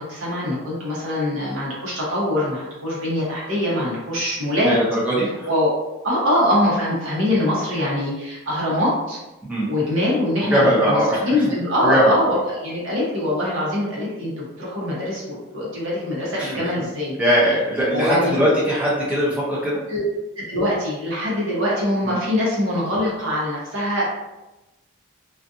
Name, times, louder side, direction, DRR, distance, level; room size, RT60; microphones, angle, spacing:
voice 1, 0.0-4.8 5.5-5.7 6.0-9.2 9.7-17.2 17.9-18.3 19.9-20.0 20.4-24.1, left 1 dB, 70° right, -5 dB, 0.9 m, -23 dB
voice 2, 4.6-5.5 9.4-9.7 10.4-12.4 16.3-16.7 17.2-19.8 22.1-22.2, equal, 5° right, -7 dB, 0.5 m, -21 dB
2.5 x 2.4 x 2.5 m, 1.0 s
head